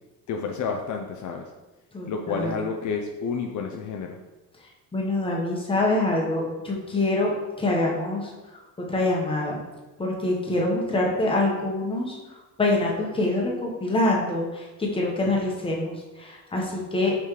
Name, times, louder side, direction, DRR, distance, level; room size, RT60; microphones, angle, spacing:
voice 1, 0.3-1.4 2.1-4.2, left 5 dB, 55° left, 2 dB, 0.6 m, -30 dB
voice 2, 1.9-2.6 4.9-8.6 8.9-9.6 10.0-17.2, left 2 dB, 15° left, -2 dB, 1.1 m, -25 dB
5.7 x 5.2 x 3.2 m, 1.2 s
cardioid pair, 135°, 36 cm